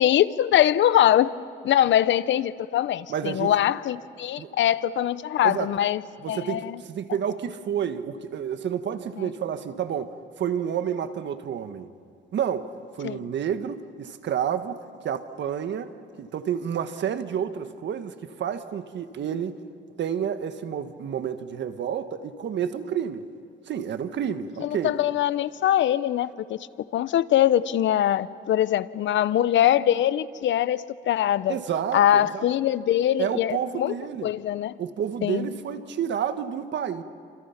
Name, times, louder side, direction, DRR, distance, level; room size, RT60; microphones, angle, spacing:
voice 1, 0.0-1.3 1.6-6.0 6.3-6.8 9.2-9.3 13.0-13.2 24.6-26.6 26.9-31.6 31.9-33.9 34.2-34.7 35.2-35.5, left 11 dB, 70° left, 16 dB, 0.8 m, -22 dB
voice 2, 3.1-3.5 4.4-4.5 5.4-5.7 6.2-11.9 12.3-12.7 12.9-19.6 20.0-23.2 23.7-24.9 31.5-32.4 33.2-34.3 34.8-37.0, right 8 dB, 65° right, 9 dB, 1.5 m, -30 dB
28.5 x 27.5 x 5.9 m, 2.4 s
cardioid pair, 90°, 20 cm